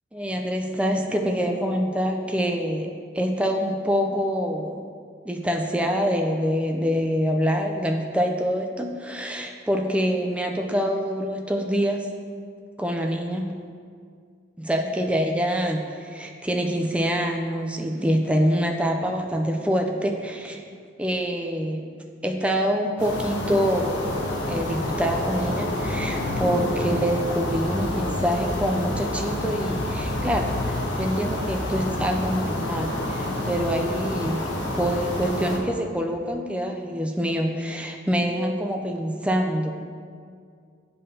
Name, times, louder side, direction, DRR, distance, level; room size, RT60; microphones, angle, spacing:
voice 1, 0.1-4.8 5.2-12.1 12.8-13.6 14.6-20.6 21.0-21.9 22.2-24.0 24.5-39.7, equal, 5° right, 3 dB, 0.4 m, -25 dB
sound 1, 23.0-35.6, left 1 dB, 65° left, 1.0 m, -28 dB
8.6 x 5.4 x 2.8 m, 2.2 s
head